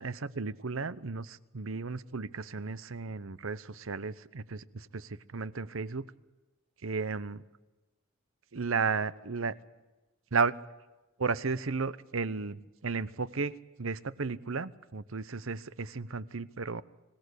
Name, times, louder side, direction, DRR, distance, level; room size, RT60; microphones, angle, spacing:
voice 1, 0.0-6.1 6.8-7.4 8.5-9.6 10.3-10.5 11.2-16.8, right 4 dB, 75° right, 16 dB, 0.8 m, -34 dB
25.0 x 17.5 x 8.3 m, 1.1 s
head